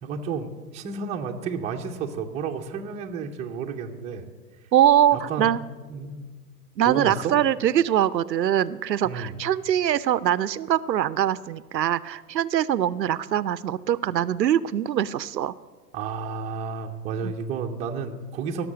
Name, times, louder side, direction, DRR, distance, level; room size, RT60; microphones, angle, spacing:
voice 1, 0.0-4.2 5.1-5.5 5.9-6.3 6.9-7.3 9.0-9.4 15.9-18.7, right 5 dB, 15° right, 2 dB, 0.6 m, -31 dB
voice 2, 4.7-5.6 6.8-15.5 17.2-17.3, right 10 dB, 85° right, 18 dB, 0.6 m, -23 dB
16.5 x 6.6 x 7.5 m, 1.5 s
figure-of-eight pair, 115°, 49 cm